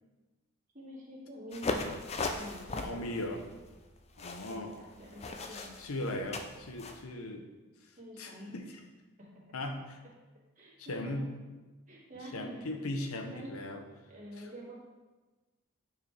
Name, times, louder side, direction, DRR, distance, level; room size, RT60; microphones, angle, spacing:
voice 1, 0.7-1.9 2.4-3.4 4.4-6.4 8.0-8.5 10.6-11.2 11.9-12.6 13.3-13.5 14.1-14.8, equal, 35° right, -6 dB, 2.1 m, -47 dB
sound 1, 1.5-7.0, left 3 dB, 30° left, 0.4 m, -38 dB
voice 2, 2.8-3.4 4.2-4.8 5.5-7.5 8.2-8.6 9.5-10.0 10.8-11.3 12.3-13.8 14.4-14.5, left 1 dB, 80° left, 5 dB, 0.8 m, -38 dB
9.3 x 4.8 x 3.4 m, 1.2 s
head